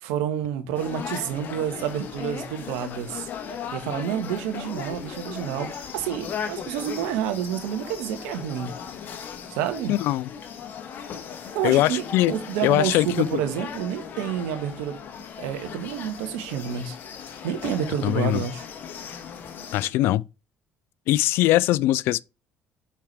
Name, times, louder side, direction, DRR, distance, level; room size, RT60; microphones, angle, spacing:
voice 1, 0.0-3.3 3.7-8.7 9.5-9.9 11.5-15.0 15.4-18.6, right 9 dB, 85° right, 1.3 m, -29 dB
sound 1, 0.7-19.9, left 7 dB, 55° left, 1.3 m, -37 dB
voice 2, 9.9-10.3 11.6-12.3 12.6-13.3 18.0-18.4 19.7-20.2 21.1-22.2, left 16 dB, 75° left, 0.3 m, -21 dB
5.7 x 4.7 x 4.6 m
supercardioid pair, 70°, 4 cm